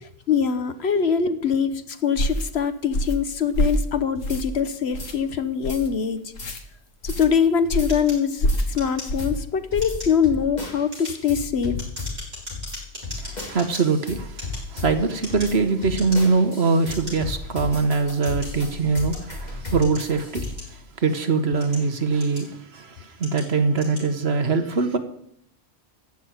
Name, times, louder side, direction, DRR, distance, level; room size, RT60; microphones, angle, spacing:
voice 1, 0.0-6.2 7.0-11.8, left 7 dB, 60° left, 1.1 m, -23 dB
sound 1, 2.2-2.5 2.9-3.2 3.5-3.9 4.2-4.6 4.9-5.1 5.6-5.9 6.3-6.6 7.0-7.3 7.7-8.0 8.4-8.7 9.1-9.3 9.7-10.0, equal, 80° left, 1.6 m, -25 dB
sound 2, 4.3-4.4 5.0-5.1 5.7-5.8 6.4-6.5 7.1-7.2 7.8-7.9 8.5-8.6 9.2-20.8, left 3 dB, 35° left, 2.7 m, -35 dB
sound 3, 7.9-9.4 9.7-10.2 10.7-13.8 14.3-15.6 15.9-16.4 16.9-17.2 17.8-19.3 19.8-21.0 21.5-22.7 23.2-23.5 23.7-24.1, left 1 dB, 35° right, 6.6 m, -39 dB
voice 2, 13.1-25.0, right 4 dB, 55° right, 1.4 m, -23 dB
14.5 x 6.1 x 9.5 m
omnidirectional pair, 1.3 m